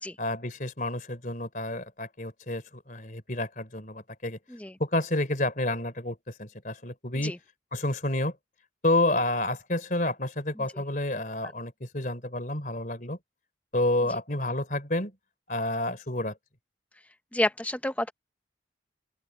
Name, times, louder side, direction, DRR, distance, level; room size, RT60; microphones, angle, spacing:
voice 1, 0.2-4.4 4.8-7.3 7.7-8.3 8.8-13.2 13.7-15.1 15.5-16.3, left 1 dB, 45° left, 3.6 m, -29 dB
voice 2, 17.3-18.1, left 1 dB, 10° left, 0.7 m, -29 dB
open air
head